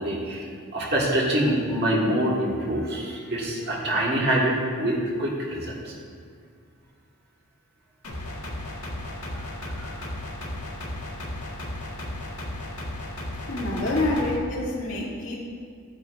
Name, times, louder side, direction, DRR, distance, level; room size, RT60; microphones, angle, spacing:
voice 1, 0.0-5.9 9.2-10.0, right 1 dB, 45° right, -4 dB, 1.6 m, -26 dB
sound 1, 8.0-14.4, left 1 dB, 80° left, 1.7 m, -34 dB
voice 2, 13.5-15.4, left 2 dB, 60° left, -6 dB, 2.3 m, -27 dB
12.0 x 9.1 x 2.6 m, 2.2 s
head